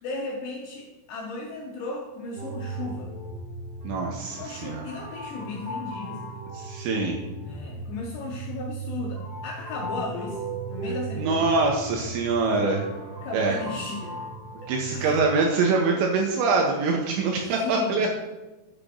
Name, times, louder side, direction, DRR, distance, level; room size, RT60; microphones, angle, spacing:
voice 1, 0.0-3.1 4.4-6.4 7.4-11.5 13.2-14.2 14.6-15.3 17.6-18.1, left 3 dB, 80° left, -1 dB, 2.5 m, -36 dB
sound 1, 2.3-15.2, right 3 dB, 50° right, 1.4 m, -37 dB
voice 2, 3.8-4.9 6.6-7.2 11.2-12.9 13.3-13.6 14.7-18.1, right 3 dB, 85° right, 1 dB, 2.7 m, -24 dB
9.8 x 8.7 x 2.5 m, 1.1 s
omnidirectional pair, 5.9 m